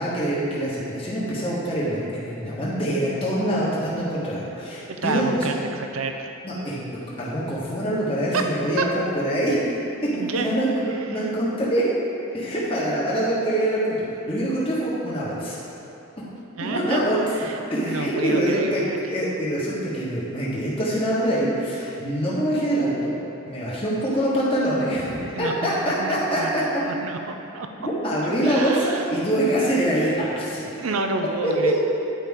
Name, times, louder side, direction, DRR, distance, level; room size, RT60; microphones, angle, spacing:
voice 1, 0.0-5.5 6.4-6.8 7.2-9.6 10.0-10.7 11.1-11.8 12.3-15.6 16.6-17.2 17.7-23.1 23.5-26.8 28.0-30.6 31.4-31.7, right 1 dB, 25° left, -8 dB, 1.5 m, -24 dB
voice 2, 4.9-6.3 8.3-8.4 8.8-8.9 10.1-10.5 11.1-11.3 16.6-17.0 17.4-17.6 17.9-19.0 25.3-27.7 28.4-29.0 30.7-31.7, right 3 dB, 80° right, 5 dB, 0.6 m, -29 dB
10.5 x 5.0 x 3.7 m, 2.9 s
head